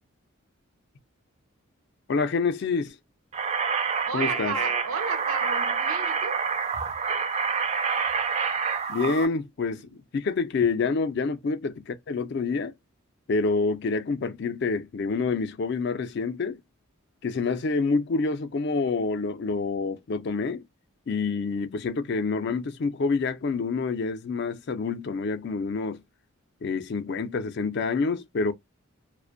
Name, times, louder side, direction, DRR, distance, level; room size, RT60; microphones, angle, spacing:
voice 1, 2.1-3.0 4.1-4.5 8.9-12.7 13.3-16.6 17.2-20.6 21.1-26.0 26.6-28.5, left 4 dB, 50° left, 0.4 m, -27 dB
sound 1, 3.3-9.3, right 6 dB, 30° right, 0.3 m, -27 dB
voice 2, 4.1-6.5 9.8-9.9, right 5 dB, 75° right, 0.5 m, -33 dB
2.4 x 2.1 x 2.4 m
head